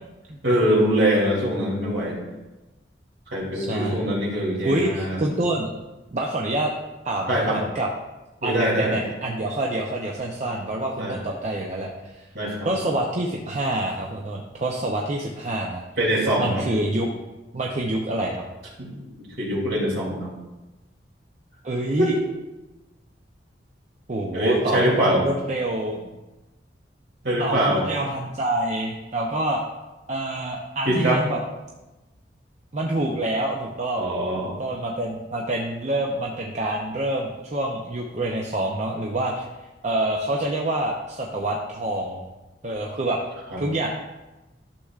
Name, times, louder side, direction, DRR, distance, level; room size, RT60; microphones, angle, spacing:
voice 1, 0.4-2.2 3.3-5.2 7.3-7.6 8.4-8.9 11.0-11.2 12.3-12.7 16.0-16.6 18.8-18.9 19.2-20.3 22.0-22.2 24.3-25.2 27.2-27.9 30.8-31.2 34.0-34.6 43.5-43.6, right 1 dB, 70° right, -4 dB, 2.7 m, -23 dB
voice 2, 3.5-4.1 4.6-5.7 6.1-6.7 7.0-7.9 8.4-12.3 12.6-15.8 16.4-17.1 17.5-18.4 21.6-22.1 24.1-24.8 25.2-26.0 27.4-29.6 30.1-31.4 32.7-34.1 34.6-39.5 39.8-42.2 42.6-43.2 43.6-43.9, right 1 dB, 40° right, -1 dB, 0.6 m, -26 dB
11.5 x 6.8 x 2.4 m, 1.1 s
head